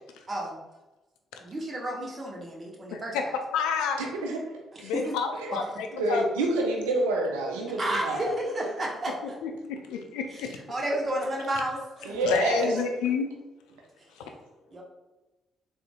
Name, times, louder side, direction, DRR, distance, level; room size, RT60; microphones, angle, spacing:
voice 1, 0.3-0.6 1.4-3.3 4.9-5.1 7.8-9.3 10.3-12.3 12.6-12.8 14.7-14.8, right 1 dB, 35° right, -1 dB, 0.8 m, -32 dB
voice 2, 2.9-3.2 3.5-4.0 4.8-6.3 9.2-10.6 12.2-13.3 14.2-14.3, left 6 dB, 70° left, 5 dB, 0.3 m, -30 dB
voice 3, 4.0-4.4 4.8-4.9 5.4-5.5 5.9-8.3 12.0-12.6, right 2 dB, 75° right, 0 dB, 0.4 m, -28 dB
3.7 x 2.4 x 2.2 m, 1.1 s
figure-of-eight pair, 40°, 0 cm